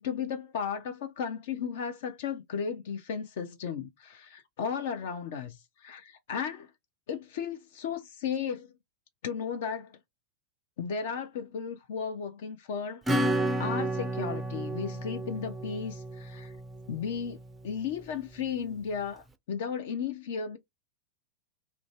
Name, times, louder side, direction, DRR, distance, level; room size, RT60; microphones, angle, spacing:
voice 1, 0.0-6.7 7.1-8.7 9.2-10.0 10.8-13.3 13.6-16.5 16.9-17.4 17.6-20.6, left 7 dB, 55° left, 0.5 m, -35 dB
Acoustic guitar / Strum, 13.1-17.3, right 1 dB, 10° right, 0.4 m, -31 dB
2.5 x 2.2 x 2.9 m
figure-of-eight pair, 90°, 0 cm